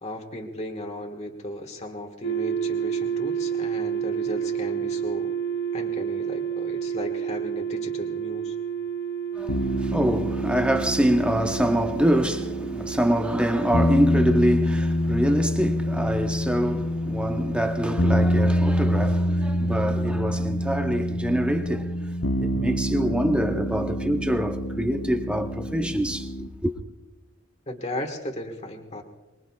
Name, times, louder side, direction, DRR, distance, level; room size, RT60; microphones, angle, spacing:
voice 1, 0.0-5.3 5.7-8.6 27.7-29.0, left 1 dB, 35° left, 1.5 m, -35 dB
sound 1, 2.2-20.2, right 7 dB, 55° left, 0.6 m, -32 dB
voice 2, 9.4-26.3 26.6-26.7, equal, 5° right, 0.9 m, -25 dB
sound 2, 9.5-26.5, equal, 80° left, 1.0 m, -26 dB
24.5 x 21.5 x 2.4 m
head